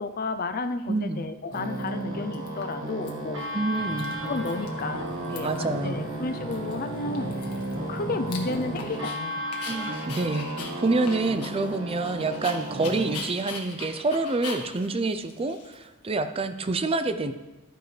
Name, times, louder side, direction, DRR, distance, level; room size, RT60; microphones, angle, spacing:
voice 1, 0.0-3.4 4.2-7.3 7.9-10.0, left 3 dB, 40° left, 9 dB, 0.5 m, -32 dB
Dog, 0.8-0.9 1.5-2.0 2.3-3.1 3.4-3.5 3.7-4.8 5.1-5.7 6.1-6.2 6.5-9.2 9.5-16.1, left 4 dB, 85° left, 1.6 m, -41 dB
voice 2, 0.9-1.2 3.5-4.2 5.4-6.1 9.7-17.3, right 3 dB, 25° right, 10 dB, 0.5 m, -27 dB
sound 1, 1.5-13.2, right 1 dB, 55° right, 1.8 m, -34 dB
sound 2, 3.8-8.9, equal, 25° left, 1.1 m, -39 dB
13.0 x 9.1 x 3.3 m, 1.1 s
head